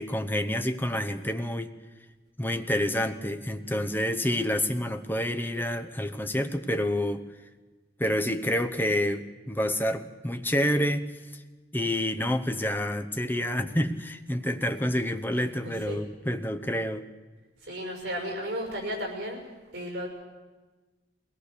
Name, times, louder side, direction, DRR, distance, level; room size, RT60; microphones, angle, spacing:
voice 1, 0.0-1.7 2.4-7.2 8.0-11.1 11.3-11.4 11.7-17.1, left 1 dB, 10° left, 7 dB, 0.8 m, -28 dB
voice 2, 15.3-16.0 17.6-19.4 19.7-20.1, equal, 60° right, 2 dB, 6.1 m, -34 dB
22.0 x 18.0 x 6.7 m, 1.3 s
head